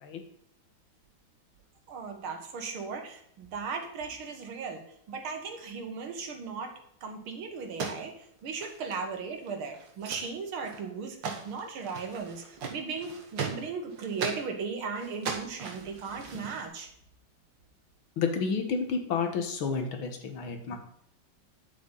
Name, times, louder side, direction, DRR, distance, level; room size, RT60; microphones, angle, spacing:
voice 1, 1.9-16.9, right 5 dB, 90° right, 4 dB, 2.3 m, -37 dB
sound 1, 7.6-9.2 9.4-9.5 9.7-10.3 10.6-10.9 11.2-14.5 15.0-16.7, right 5 dB, 65° right, 2.1 m, -38 dB
voice 2, 18.2-20.8, left 5 dB, 75° left, 5 dB, 2.1 m, -30 dB
9.3 x 8.4 x 3.9 m, 0.70 s
omnidirectional pair, 2.2 m